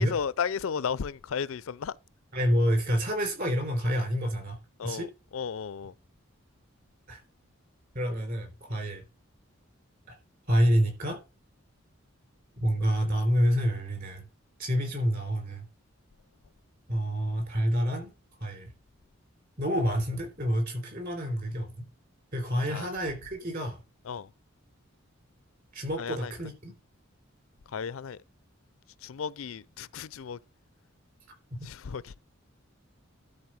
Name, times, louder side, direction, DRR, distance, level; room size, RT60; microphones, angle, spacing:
voice 1, 0.0-2.0 4.8-5.1 5.3-5.9 22.7-22.9 24.1-24.3 26.0-26.3 27.7-28.2 29.0-30.4 31.6-32.1, left 6 dB, 85° left, 0.5 m, -34 dB
voice 2, 2.3-4.6 4.8-5.1 7.1-7.2 7.9-9.0 10.1-10.2 10.5-11.2 12.6-14.3 14.6-15.7 16.9-18.1 18.4-18.7 19.6-21.9 22.3-23.8 25.7-26.7 31.6-31.7, equal, 45° right, 3.7 m, -28 dB
12.0 x 4.1 x 6.3 m
head